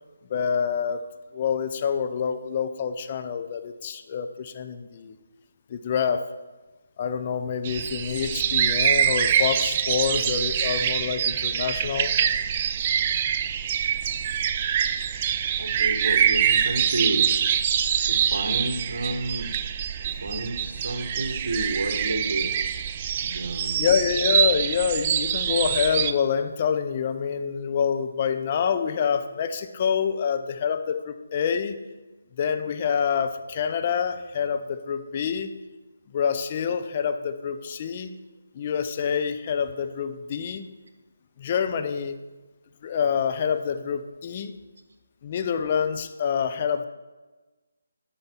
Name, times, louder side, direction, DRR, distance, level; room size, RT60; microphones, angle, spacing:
voice 1, 0.3-1.0 1.3-5.2 5.7-6.2 7.0-12.1 20.1-20.2 23.7-31.8 32.4-35.5 36.1-38.1 38.5-40.7 41.4-42.2 42.8-44.5 45.2-46.8, left 7 dB, 35° left, 9 dB, 0.6 m, -26 dB
sound 1, 7.6-26.1, right 8 dB, 35° right, 0.4 m, -25 dB
voice 2, 15.6-17.3 18.1-19.5 20.2-22.5 23.2-23.8, right 2 dB, 65° right, 5 dB, 1.5 m, -30 dB
8.8 x 5.5 x 6.1 m, 1.2 s
figure-of-eight pair, 150°, 0 cm